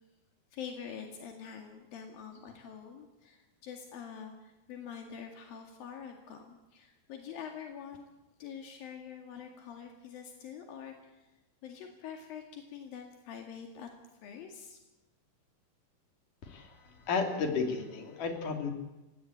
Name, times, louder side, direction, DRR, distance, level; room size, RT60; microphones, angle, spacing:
voice 1, 0.5-8.0 8.4-11.3 11.6-13.9 14.2-14.8, left 7 dB, 80° left, 3 dB, 3.9 m, -45 dB
voice 2, 16.4-18.7, left 4 dB, 65° left, 4 dB, 4.7 m, -33 dB
29.5 x 17.5 x 8.7 m, 1.0 s
omnidirectional pair, 4.0 m